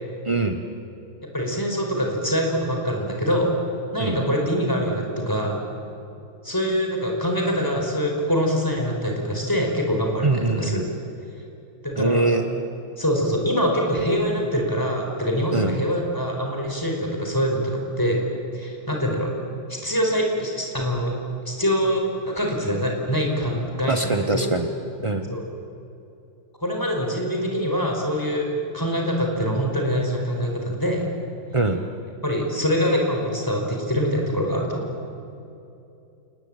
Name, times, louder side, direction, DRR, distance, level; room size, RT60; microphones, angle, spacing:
voice 1, 0.2-0.6 4.0-4.2 10.2-10.9 12.0-12.4 15.5-15.8 23.9-24.7 25.0-25.3 31.5-31.8, right 3 dB, 35° right, 6 dB, 0.4 m, -23 dB
voice 2, 1.3-3.5 3.9-5.6 6.4-10.8 11.8-12.3 13.0-18.2 18.5-19.3 19.7-21.1 21.4-24.5 25.3-25.4 26.6-28.5 28.7-31.0 32.2-34.9, equal, 10° left, 1 dB, 4.8 m, -24 dB
28.5 x 20.0 x 8.9 m, 2.7 s
omnidirectional pair, 2.3 m